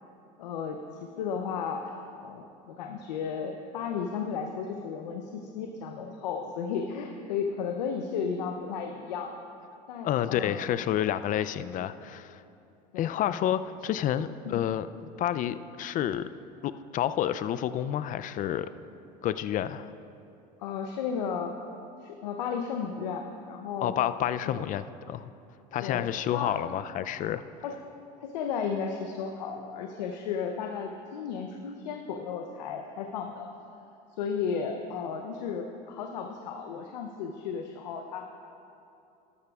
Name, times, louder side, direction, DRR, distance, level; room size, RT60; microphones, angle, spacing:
voice 1, 0.4-0.8 1.2-1.8 2.2-9.3 9.9-10.6 12.9-13.2 14.4-14.6 20.6-21.5 22.0-23.9 24.4-24.6 25.8-26.5 27.6-27.7 28.2-33.5 34.2-38.2, left 6 dB, 85° left, 4 dB, 0.7 m, -34 dB
voice 2, 10.0-12.4 13.0-16.3 16.6-18.7 19.2-19.9 23.8-25.3 25.7-27.4, left 11 dB, 40° left, 13 dB, 0.4 m, -29 dB
13.0 x 12.0 x 2.4 m, 2.7 s
hypercardioid pair, 90°, 21 cm